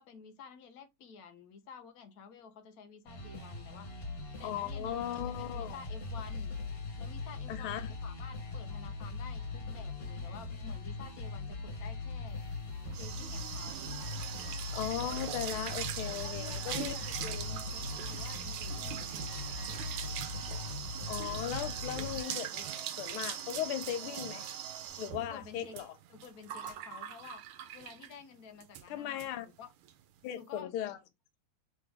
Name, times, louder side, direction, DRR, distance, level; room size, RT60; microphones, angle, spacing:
voice 1, 0.0-3.9 4.4-6.5 7.0-12.4 13.0-13.9 16.0-19.3 25.2-25.8 26.1-27.4 27.7-29.7 30.3-30.7, left 6 dB, 60° left, 1.0 m, -51 dB
sound 1, 3.1-22.2, left 3 dB, 45° left, 2.0 m, -40 dB
voice 2, 4.4-5.8 7.5-7.9 14.7-17.0 17.2-17.5 21.1-24.4 25.0-25.9 28.9-29.5 30.2-31.0, left 11 dB, 90° left, 1.6 m, -37 dB
sound 2, 12.5-28.2 28.6-28.9 29.2-29.3 29.6-29.9, right 10 dB, 90° right, 1.5 m, -41 dB
sound 3, 14.0-24.9, right 3 dB, 50° right, 1.7 m, -54 dB
4.0 x 3.4 x 3.5 m
omnidirectional pair, 2.3 m